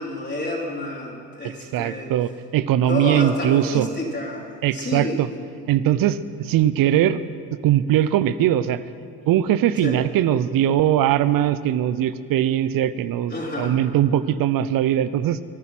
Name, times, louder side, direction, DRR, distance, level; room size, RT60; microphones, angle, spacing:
voice 1, 0.0-2.1 2.9-5.2 9.8-10.0 13.3-13.8, left 1 dB, 25° left, -3 dB, 4.2 m, -29 dB
voice 2, 1.4-3.9 4.6-5.3 5.7-7.2 7.6-8.8 9.3-15.4, right 11 dB, 60° right, 15 dB, 0.8 m, -20 dB
24.5 x 9.4 x 6.0 m, 2.2 s
hypercardioid pair, 60°, 38 cm